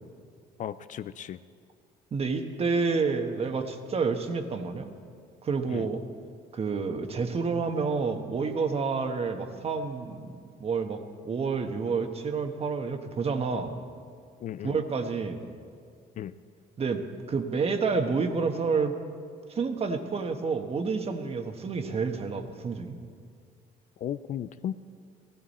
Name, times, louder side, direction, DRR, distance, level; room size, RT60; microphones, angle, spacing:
voice 1, 0.6-1.4 5.7-5.9 14.4-14.8 16.2-16.3 24.0-24.7, left 10 dB, 50° left, 14 dB, 0.4 m, -35 dB
voice 2, 2.1-4.9 5.4-6.0 6.5-10.3 10.6-13.7 14.6-15.4 16.8-18.9 19.5-23.0, right 4 dB, 35° right, 6 dB, 1.3 m, -29 dB
16.5 x 15.5 x 4.2 m, 2.2 s
cardioid pair, 110°, 17 cm